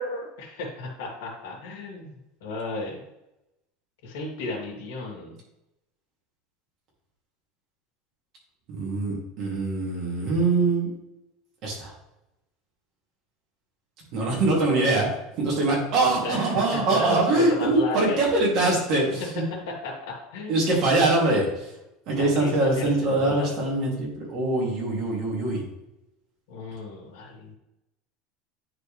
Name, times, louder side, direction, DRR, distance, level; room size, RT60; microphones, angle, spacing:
voice 1, 0.0-3.0 4.0-5.4 16.2-18.2 18.6-18.8 19.8-20.6 22.1-23.5 26.5-27.5, left 2 dB, 75° left, -3 dB, 2.3 m, -34 dB
voice 2, 8.7-10.9 11.6-11.9 14.1-15.1 15.4-19.4 20.5-21.5 22.1-25.6, right 2 dB, 40° right, -4 dB, 2.8 m, -23 dB
9.5 x 4.4 x 3.4 m, 0.90 s
cardioid pair, 170°, 0 cm